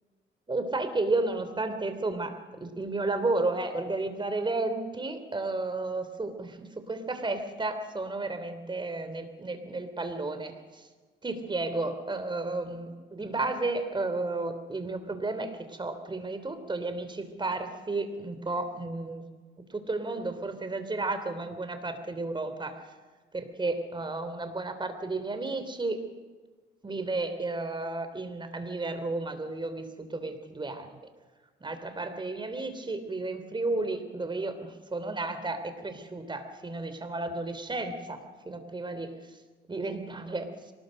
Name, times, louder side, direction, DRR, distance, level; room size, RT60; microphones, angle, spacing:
voice 1, 0.5-10.9 11.2-19.2 19.7-22.8 23.3-26.0 26.8-30.9 31.6-39.2 39.7-40.5, right 2 dB, 25° right, 9 dB, 3.2 m, -32 dB
24.0 x 19.5 x 6.5 m, 1.4 s
cardioid pair, 90°, 20 cm